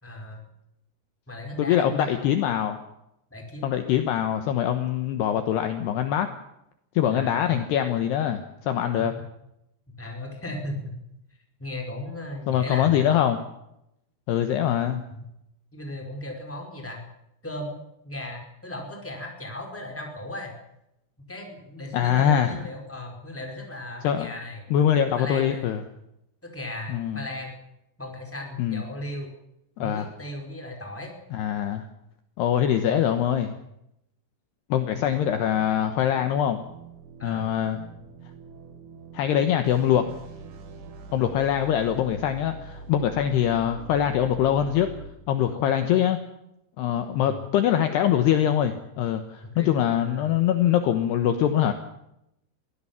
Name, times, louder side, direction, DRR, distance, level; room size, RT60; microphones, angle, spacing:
voice 1, 0.0-0.5 1.3-2.3 3.3-3.7 7.1-7.6 9.1-9.2 10.0-11.0 11.6-13.1 14.6-15.2 15.7-17.0 17.4-17.8 18.0-20.5 21.2-24.6 25.1-25.8 26.4-27.5 28.0-29.3 29.8-31.1 34.9-35.1 37.2-37.5 41.2-41.3 47.2-47.4 49.5-49.7 50.0-50.3, left 1 dB, 5° left, 1 dB, 4.1 m, -37 dB
voice 2, 1.6-2.8 3.6-6.3 6.9-9.1 12.5-13.4 14.3-15.0 21.9-22.6 24.0-24.3 24.7-25.8 26.9-27.2 28.6-28.8 29.8-30.1 31.3-31.9 32.4-33.6 34.7-36.6 37.2-37.8 39.1-40.0 41.1-44.9 45.3-46.2 46.8-51.7, left 10 dB, 70° left, 7 dB, 2.8 m, -23 dB
sound 1, 34.9-45.1, right 3 dB, 80° right, 5.2 m, -43 dB
23.5 x 17.5 x 7.2 m, 0.81 s
omnidirectional pair, 5.7 m